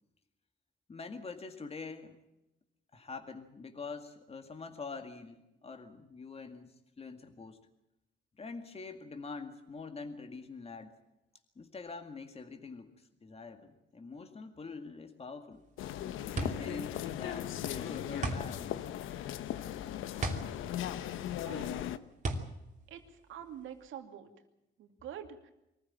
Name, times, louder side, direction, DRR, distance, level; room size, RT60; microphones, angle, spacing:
voice 1, 0.9-2.2 2.9-7.6 8.4-10.9 11.6-15.6 16.3-18.7, left 4 dB, 30° left, 6 dB, 2.1 m, -45 dB
sound 1, 15.5-23.9, right 2 dB, 40° right, 2.9 m, -38 dB
sound 2, 15.8-22.0, left 11 dB, 85° left, 1.0 m, -38 dB
voice 2, 21.5-22.0 22.9-24.3 24.8-25.5, right 9 dB, 85° right, 6 dB, 2.6 m, -47 dB
23.5 x 15.0 x 8.8 m, 0.90 s
cardioid pair, 90°, 20 cm